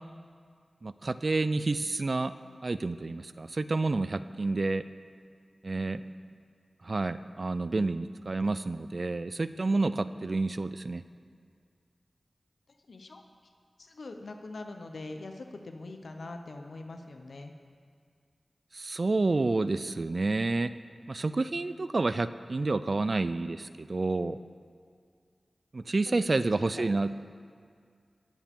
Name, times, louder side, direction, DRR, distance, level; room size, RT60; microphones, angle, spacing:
voice 1, 0.8-2.3 2.6-4.8 5.6-6.0 6.8-11.0 18.7-20.7 21.1-24.4 25.7-27.1, right 3 dB, 50° right, 13 dB, 0.3 m, -29 dB
voice 2, 5.8-6.3 12.7-13.2 13.8-17.5 26.1-27.1, left 2 dB, 80° left, 5 dB, 0.8 m, -44 dB
18.0 x 7.4 x 3.7 m, 2.1 s
wide cardioid pair, 80°, 0 cm